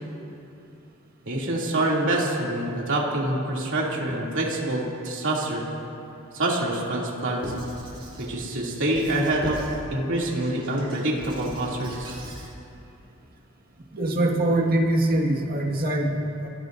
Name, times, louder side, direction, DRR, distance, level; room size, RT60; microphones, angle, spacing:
voice 1, 1.2-5.6 6.3-7.5 8.2-9.6 9.9-12.2, right 1 dB, 60° right, -3 dB, 2.8 m, -26 dB
Squeak / Writing, 7.4-8.3 8.9-9.8 10.3-12.5, right 1 dB, 25° right, 3.9 m, -39 dB
voice 2, 13.9-16.5, right 1 dB, 45° right, 0 dB, 1.8 m, -23 dB
27.0 x 18.5 x 2.7 m, 2.8 s
head